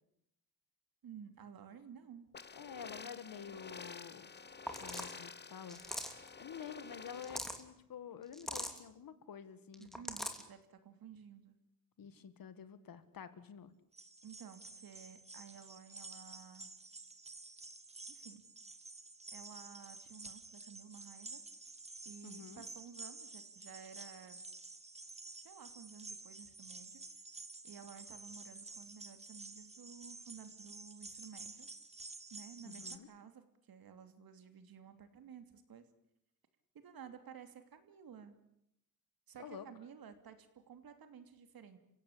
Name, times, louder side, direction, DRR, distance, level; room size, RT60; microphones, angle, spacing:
voice 1, 1.0-2.3 9.8-11.6 14.2-16.7 18.1-18.4 19.3-21.4 22.0-24.4 25.4-27.0 27.6-31.7 32.3-35.8 36.7-38.4 39.3-41.8, right 7 dB, 80° right, 9 dB, 3.0 m, -54 dB
sound 1, 2.3-7.4, left 5 dB, 30° left, 1.0 m, -50 dB
voice 2, 2.6-4.3 4.8-5.8 6.1-9.9 12.0-13.7 22.2-22.6 32.6-33.1 39.4-39.7, left 7 dB, 70° left, 12 dB, 2.1 m, -49 dB
sound 2, 4.7-5.2 5.7-6.3 7.1-7.6 8.3-8.8 9.7-10.4, equal, ahead, 2.8 m, -41 dB
sound 3, 13.9-33.0, right 3 dB, 20° right, 1.5 m, -51 dB
30.0 x 16.5 x 8.7 m, 0.78 s
cardioid pair, 115°, 35 cm